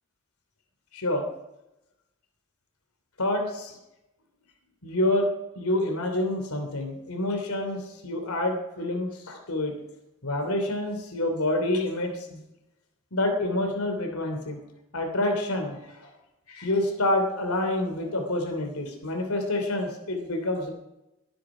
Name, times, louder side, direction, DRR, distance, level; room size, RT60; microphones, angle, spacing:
voice 1, 0.9-1.2 3.2-3.8 4.8-5.3 5.6-9.7 10.2-12.4 13.1-14.6 14.9-16.1 16.5-20.7, left 1 dB, 85° left, 5 dB, 3.0 m, -27 dB
22.5 x 10.5 x 5.0 m, 0.93 s
head